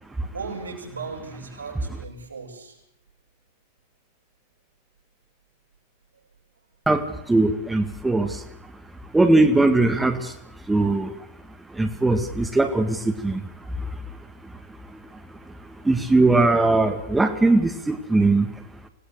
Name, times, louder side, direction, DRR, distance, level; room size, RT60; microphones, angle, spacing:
voice 1, 0.3-2.8, right 4 dB, 80° right, -2 dB, 7.3 m, -36 dB
voice 2, 7.3-8.3 9.1-10.3 10.7-11.1 11.8-13.0 13.2-13.4 15.9-18.5, right 2 dB, 10° right, 6 dB, 2.0 m, -19 dB
26.0 x 18.5 x 6.7 m, 0.80 s
figure-of-eight pair, 90°, 0 cm